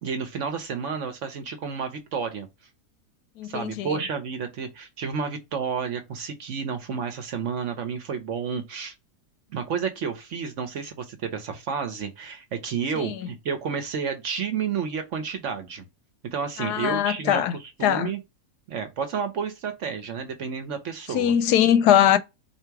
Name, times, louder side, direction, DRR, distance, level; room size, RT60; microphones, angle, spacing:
voice 1, 0.0-2.5 3.5-8.9 9.5-15.8 16.3-17.4 17.8-18.2 18.7-21.3, right 6 dB, 60° right, 1.0 m, -31 dB
voice 2, 3.4-4.0 12.9-13.2 16.6-18.1 21.1-22.2, left 10 dB, 85° left, 1.2 m, -21 dB
4.0 x 2.9 x 4.5 m
omnidirectional pair, 1.7 m